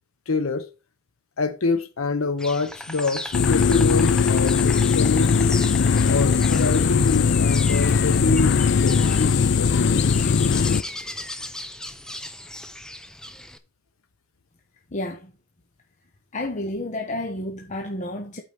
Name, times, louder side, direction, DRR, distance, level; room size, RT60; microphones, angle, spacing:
voice 1, 0.3-0.7 1.4-5.7 6.0-9.3 9.6-10.1, left 3 dB, 80° left, 0.9 m, -26 dB
Insect, 2.4-13.6, left 1 dB, 5° left, 0.8 m, -37 dB
sound 1, 3.3-10.8, left 5 dB, 60° left, 0.5 m, -19 dB
voice 2, 14.9-15.3 16.3-18.4, left 1 dB, 35° left, 1.0 m, -30 dB
8.8 x 4.6 x 6.5 m
head